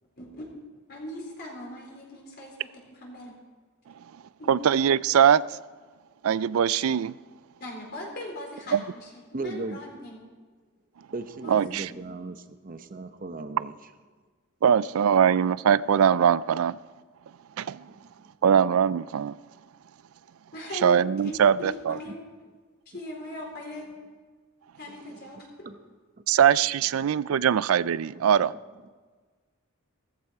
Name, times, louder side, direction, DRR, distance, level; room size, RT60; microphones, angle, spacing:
voice 1, 0.9-2.6 2.8-3.3 4.4-4.6 7.6-10.2 11.4-11.6 11.9-12.1 20.5-22.2 22.9-23.9 24.8-25.5, left 1 dB, 50° left, 4.0 m, -39 dB
voice 2, 4.5-5.4 6.2-7.1 8.7-8.8 11.5-11.9 14.6-16.8 17.6-17.8 18.4-19.4 20.8-22.0 26.3-28.5, right 8 dB, 75° right, 0.4 m, -21 dB
voice 3, 9.3-9.8 11.1-13.7 17.9-18.1 25.1-25.2 25.6-25.8 27.3-27.5, right 3 dB, 40° right, 0.8 m, -37 dB
16.5 x 14.5 x 4.7 m
head